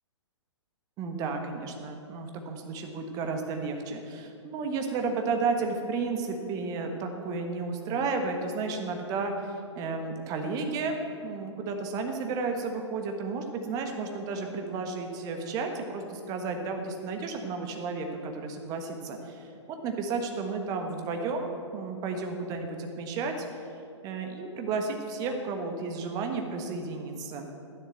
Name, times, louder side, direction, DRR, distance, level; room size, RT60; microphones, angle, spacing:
voice 1, 1.0-11.0 11.2-19.5 19.8-23.4 24.0-27.5, right 4 dB, 25° right, 4 dB, 1.4 m, -32 dB
12.0 x 10.5 x 7.9 m, 2.7 s
figure-of-eight pair, 120°, 16 cm